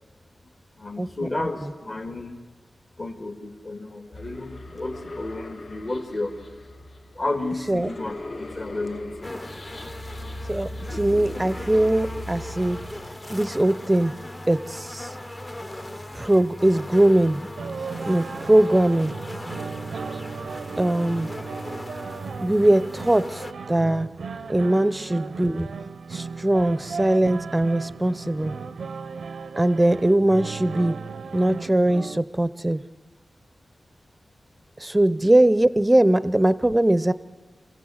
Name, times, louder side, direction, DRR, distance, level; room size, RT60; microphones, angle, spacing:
voice 1, 0.8-2.4 3.0-6.4 7.1-9.8 22.4-22.5 25.5-25.6, left 2 dB, 40° left, 3 dB, 2.1 m, -32 dB
sound 1, 4.1-13.1, left 1 dB, 60° left, 3.0 m, -38 dB
sound 2, 9.2-23.5, left 1 dB, 20° left, 0.8 m, -38 dB
voice 2, 10.5-12.8 13.3-14.2 14.5-15.1 16.1-17.5 18.1-19.1 20.8-21.3 22.4-23.4 23.7-24.1 24.5-25.7 26.1-28.6 29.6-31.0 31.3-32.8 34.8-37.1, right 1 dB, 15° right, 15 dB, 0.6 m, -21 dB
sound 3, 17.6-32.2, right 5 dB, 80° right, 0.6 m, -36 dB
27.0 x 16.0 x 8.0 m, 1.3 s
wide cardioid pair, 130°, 0 cm